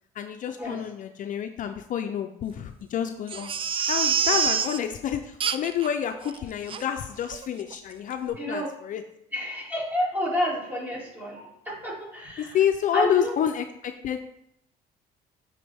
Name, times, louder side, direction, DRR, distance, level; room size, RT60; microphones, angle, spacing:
voice 1, 0.1-3.5 3.9-9.0 12.4-14.2, left 9 dB, 50° left, 7 dB, 0.4 m, -29 dB
Crying sobbing, 3.3-4.8 5.4-5.9 6.2-6.3 6.7-6.8 7.3-7.5 7.7-7.8, right 7 dB, 30° right, 0.4 m, -26 dB
voice 2, 8.4-8.7 9.3-12.6 12.9-13.3, left 1 dB, 10° right, -4 dB, 2.3 m, -29 dB
8.3 x 4.0 x 3.4 m, 0.79 s
cardioid pair, 110°, 17 cm